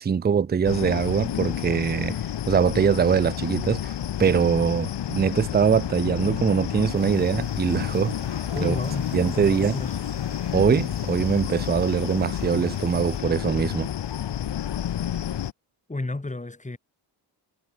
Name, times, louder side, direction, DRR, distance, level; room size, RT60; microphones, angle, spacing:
voice 1, 0.0-2.2 2.5-3.9 4.2-8.1 8.6-8.8 9.1-9.8 10.5-13.9, right 7 dB, 25° right, 0.6 m, -22 dB
sound 1, 0.6-15.5, left 10 dB, 75° left, 2.8 m, -30 dB
sound 2, 6.9-13.2, right 8 dB, 60° right, 6.3 m, -47 dB
voice 2, 8.5-9.9 15.9-16.8, left 2 dB, 15° left, 6.1 m, -32 dB
cardioid pair, 90°, 43 cm